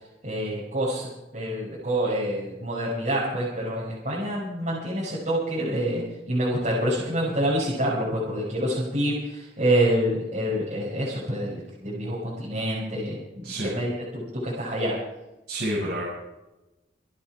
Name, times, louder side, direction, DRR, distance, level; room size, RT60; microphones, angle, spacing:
voice 1, 0.2-6.0 6.3-15.0, right 1 dB, 45° right, -7 dB, 6.0 m, -27 dB
voice 2, 15.5-16.0, equal, 70° right, -6 dB, 6.9 m, -28 dB
26.5 x 9.8 x 4.7 m, 0.96 s
head